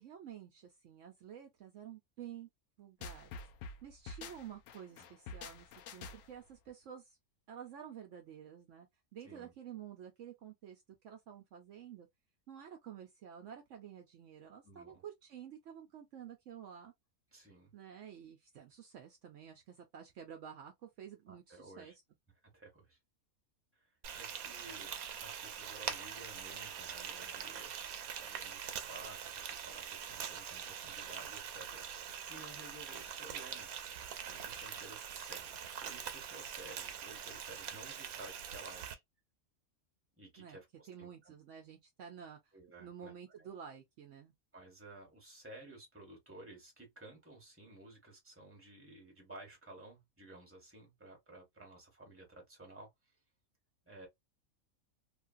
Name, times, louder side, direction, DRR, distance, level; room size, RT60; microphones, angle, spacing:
voice 1, 0.0-2.5 2.8-3.4 3.8-7.2 7.5-8.9 9.1-12.1 12.5-16.9 17.7-21.9 40.4-40.6 40.9-44.3, right 9 dB, 70° right, 0.9 m, -51 dB
sound 1, 3.0-6.5, left 4 dB, 70° left, 0.9 m, -47 dB
voice 2, 14.6-15.0 17.3-17.7 21.3-21.9 22.4-23.0 23.7-33.7 34.2-39.0 40.2-41.3 42.5-43.1 43.4-43.5 44.5-53.1 53.8-54.1, right 2 dB, 10° right, 1.3 m, -54 dB
Frying (food), 24.0-38.9, right 8 dB, 85° right, 1.1 m, -43 dB
3.1 x 2.3 x 2.5 m
omnidirectional pair, 1.5 m